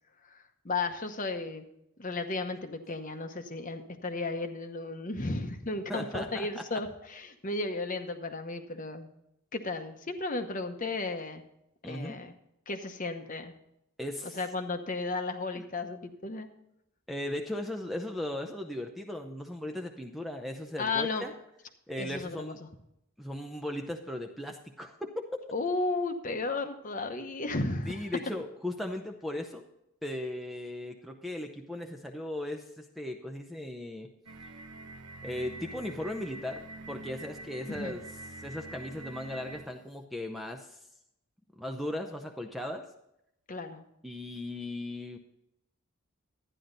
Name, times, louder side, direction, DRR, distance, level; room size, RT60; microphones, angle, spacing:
voice 1, 0.2-1.7 2.0-9.1 9.5-11.4 11.9-12.3 12.7-13.5 14.2-16.5 20.8-21.3 22.0-22.7 25.5-28.1 37.7-38.0 43.5-43.8, left 3 dB, 35° left, 7 dB, 0.9 m, -34 dB
voice 2, 5.9-6.5 11.8-12.2 14.0-14.4 15.5-15.6 17.1-21.3 21.9-22.6 23.2-25.1 27.9-29.6 30.0-34.1 34.4-34.5 35.2-38.0 38.4-40.8 41.6-42.8 44.0-45.2, left 1 dB, ahead, 3 dB, 0.6 m, -37 dB
sound 1, 34.3-39.8, right 2 dB, 85° right, 0.9 m, -45 dB
12.0 x 10.0 x 4.0 m, 0.81 s
head